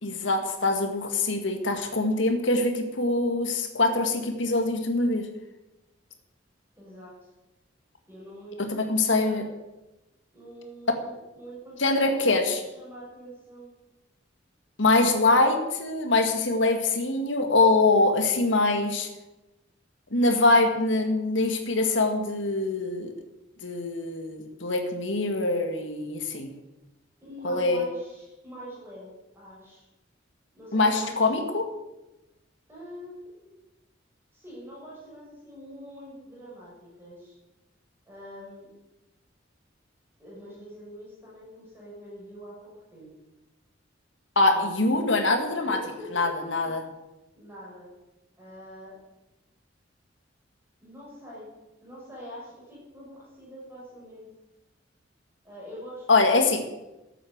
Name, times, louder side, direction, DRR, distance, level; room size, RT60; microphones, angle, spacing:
voice 1, 0.0-5.3 8.6-9.4 11.8-12.6 14.8-19.1 20.1-23.1 23.6-26.5 27.4-27.8 30.7-31.7 44.4-45.8 46.1-46.8 56.1-56.6, left 2 dB, 75° left, 5 dB, 1.9 m, -24 dB
voice 2, 6.8-7.1 8.1-9.5 10.3-13.7 14.9-15.5 27.2-29.1 29.3-29.9 30.5-31.3 32.7-33.1 34.3-37.3 38.1-38.7 40.2-43.1 44.5-44.9 45.6-46.7 47.3-47.9 48.4-48.9 50.8-51.5 51.8-54.3 55.4-56.1, equal, 15° right, -6 dB, 6.3 m, -44 dB
12.5 x 9.0 x 8.0 m, 1.0 s
head